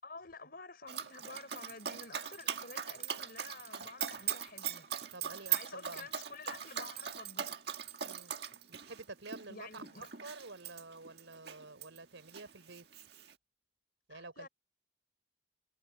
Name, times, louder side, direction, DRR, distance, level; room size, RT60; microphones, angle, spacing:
voice 1, 0.0-4.9 5.4-7.5 9.5-10.1 14.1-14.5, left 3 dB, 50° left, 5.1 m, -50 dB
Dog, 0.9-12.0 12.3-13.3, right 9 dB, 55° right, 1.8 m, -40 dB
sound 1, 1.4-6.4 6.6-7.3, right 7 dB, 35° right, 7.8 m, -65 dB
voice 2, 5.1-6.1 8.0-8.3 8.7-12.9 14.1-14.5, right 3 dB, 80° right, 3.5 m, -49 dB
head